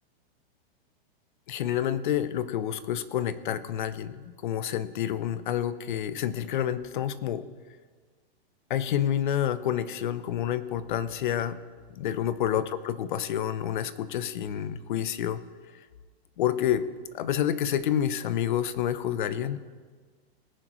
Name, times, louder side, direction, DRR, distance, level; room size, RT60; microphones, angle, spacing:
voice 1, 1.5-7.5 8.7-11.6 11.9-15.4 16.4-16.9 17.1-19.6, left 10 dB, 50° left, 14 dB, 0.7 m, -28 dB
19.5 x 9.9 x 3.1 m, 1.5 s
supercardioid pair, 175°, 31 cm